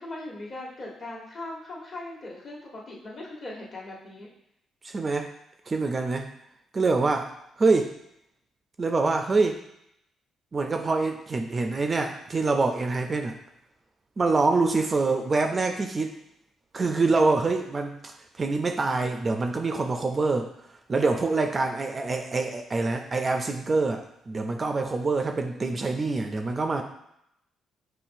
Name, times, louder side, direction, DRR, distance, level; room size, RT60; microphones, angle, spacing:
voice 1, 0.0-4.3 15.3-15.6 25.4-25.8, left 2 dB, 45° left, -4 dB, 1.2 m, -40 dB
voice 2, 4.8-5.3 5.7-6.3 6.7-7.3 7.6-7.9 8.8-9.6 10.5-13.4 14.2-16.1 16.7-20.5 20.9-26.8, right 3 dB, 35° right, 5 dB, 0.4 m, -25 dB
5.5 x 2.2 x 2.6 m, 0.78 s
cardioid pair, 90°, 0 cm